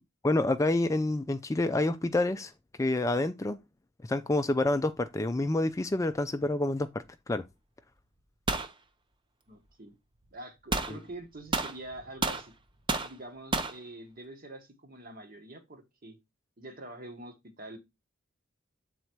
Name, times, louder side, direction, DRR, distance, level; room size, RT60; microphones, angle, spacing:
voice 1, 0.2-2.5 2.8-3.6 4.0-6.9 7.3-7.4 10.9-11.0, left 2 dB, 15° left, 0.3 m, -28 dB
sound 1, 8.5-8.7 10.7-10.9 11.5-12.5 12.9-13.1 13.5-13.8, right 3 dB, 25° right, 0.6 m, -30 dB
voice 2, 9.5-10.0 10.3-12.5 13.0-16.2 16.6-17.8, right 1 dB, 45° right, 1.4 m, -45 dB
7.9 x 4.1 x 4.5 m
head